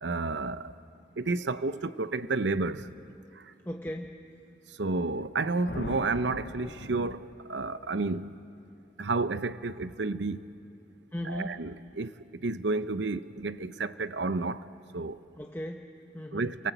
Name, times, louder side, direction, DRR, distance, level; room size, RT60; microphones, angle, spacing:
voice 1, 0.0-0.7 1.2-2.9 3.3-3.5 4.7-8.3 9.0-10.5 11.2-14.7 14.9-15.2 16.3-16.7, right 3 dB, 75° right, 13 dB, 0.7 m, -31 dB
voice 2, 3.6-4.2 11.1-11.6 15.4-16.5, equal, 10° left, 2 dB, 0.8 m, -37 dB
sound 1, 5.7-7.6, left 3 dB, 60° left, 0.6 m, -40 dB
30.0 x 24.0 x 8.2 m, 2.6 s
head